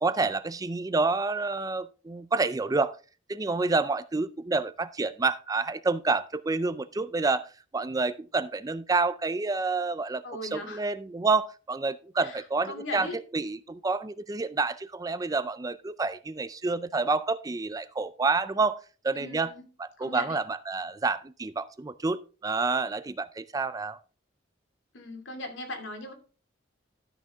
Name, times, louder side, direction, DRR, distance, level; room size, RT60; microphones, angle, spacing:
voice 1, 0.0-3.0 3.3-7.5 7.7-10.2 10.5-13.1 13.3-18.8 19.0-19.5 19.8-24.0, right 3 dB, 20° right, 15 dB, 0.4 m, -28 dB
voice 2, 10.2-10.8 12.2-13.2 19.1-19.7 20.0-20.4 24.9-26.1, left 2 dB, 80° left, 3 dB, 2.6 m, -39 dB
13.0 x 6.4 x 3.5 m, 0.36 s
head